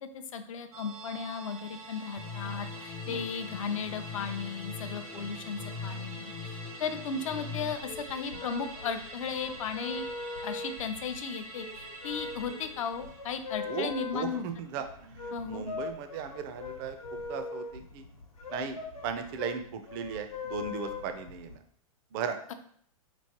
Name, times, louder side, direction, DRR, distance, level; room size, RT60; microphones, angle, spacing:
voice 1, 0.1-10.1 10.4-14.4 15.3-15.6, left 6 dB, 65° left, 9 dB, 0.5 m, -36 dB
Musical instrument, 0.7-15.4 15.7-15.8, right 3 dB, 80° right, 1.0 m, -47 dB
sound 1, 2.2-7.7, left 5 dB, 15° left, 0.4 m, -41 dB
sound 2, 7.8-21.6, left 4 dB, 85° left, 1.0 m, -41 dB
voice 2, 13.6-17.0 17.3-18.1 18.5-21.6 22.1-22.5, right 6 dB, 40° right, 8 dB, 0.5 m, -37 dB
4.3 x 3.0 x 2.9 m, 0.62 s
hypercardioid pair, 110°, 18 cm